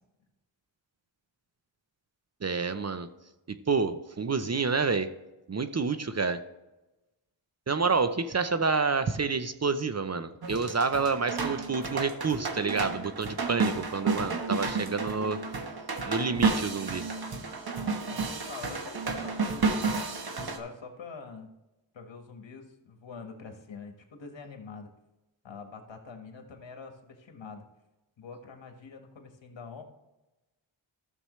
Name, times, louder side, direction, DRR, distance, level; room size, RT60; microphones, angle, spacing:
voice 1, 2.4-3.1 3.5-5.1 5.5-6.4 7.7-15.4 16.1-17.0, right 4 dB, 35° right, 10 dB, 0.7 m, -28 dB
sound 1, 10.4-20.6, right 4 dB, 50° right, 1.4 m, -31 dB
voice 2, 18.1-21.5 21.9-24.9 25.4-27.7 28.2-29.8, left 5 dB, 65° left, 4 dB, 1.7 m, -45 dB
13.0 x 7.1 x 3.2 m, 1.0 s
cardioid pair, 75°, 47 cm